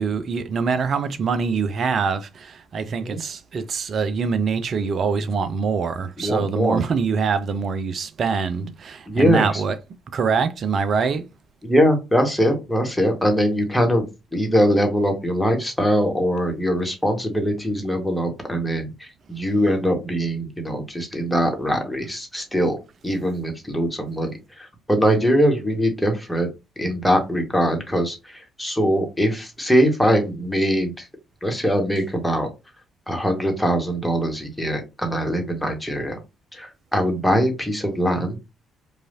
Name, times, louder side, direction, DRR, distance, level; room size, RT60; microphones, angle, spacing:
voice 1, 0.0-9.8 10.1-11.3, right 5 dB, 45° right, 0.5 m, -24 dB
voice 2, 6.2-6.8 9.1-9.6 11.6-14.0 14.3-22.8 23.0-26.5 26.8-31.1 31.4-32.5 33.1-36.2 36.5-38.4, equal, 5° left, 1.5 m, -22 dB
4.8 x 2.5 x 2.6 m
figure-of-eight pair, 45°, 0 cm